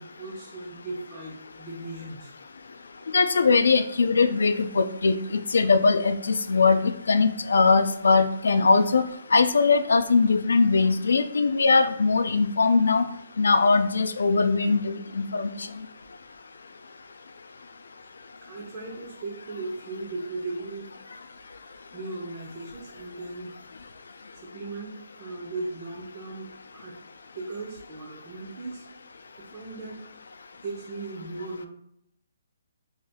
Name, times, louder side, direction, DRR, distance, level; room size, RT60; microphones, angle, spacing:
voice 1, 0.0-2.3 18.4-20.9 21.7-23.5 24.5-27.0 27.3-28.8 29.4-30.0 30.6-31.7, right 2 dB, 25° right, -4 dB, 0.4 m, -37 dB
voice 2, 3.1-6.8 7.1-9.0 9.3-13.0 13.4-15.6, left 4 dB, 85° left, 9 dB, 0.3 m, -21 dB
2.6 x 2.2 x 3.4 m, 0.75 s
hypercardioid pair, 180°, 0 cm